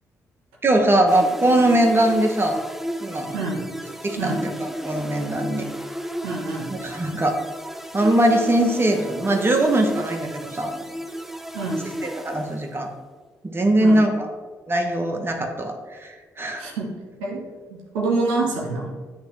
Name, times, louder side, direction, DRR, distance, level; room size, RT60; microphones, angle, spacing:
voice 1, 0.6-2.6 3.0-3.3 4.0-5.7 6.7-7.4 7.9-10.7 12.0-12.9 13.4-14.3 14.7-16.6, right 1 dB, 25° right, 3 dB, 1.0 m, -21 dB
sound 1, 1.1-12.9, equal, 5° right, 0.5 m, -33 dB
voice 2, 3.3-3.6 4.2-4.5 6.2-6.7 11.5-11.9 13.8-14.0 16.6-16.9 17.2-17.4 17.7-18.9, right 3 dB, 85° right, -2 dB, 1.1 m, -26 dB
9.2 x 3.2 x 3.2 m, 1.4 s
hypercardioid pair, 45°, 8 cm